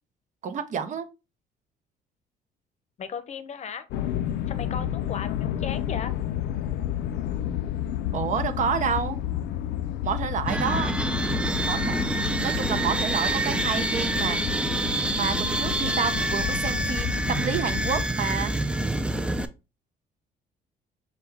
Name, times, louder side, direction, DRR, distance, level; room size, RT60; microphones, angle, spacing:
voice 1, 0.4-1.1 8.1-9.2 10.0-10.9 11.6-14.4 15.1-18.5, right 6 dB, 50° right, 0.7 m, -29 dB
voice 2, 3.0-3.9 4.5-6.1, left 7 dB, 40° left, 0.7 m, -36 dB
sound 1, 3.9-18.0, left 11 dB, 80° left, 0.4 m, -31 dB
sound 2, 10.5-19.5, right 1 dB, 5° right, 0.4 m, -27 dB
6.2 x 2.2 x 3.4 m
cardioid pair, 110°, 17 cm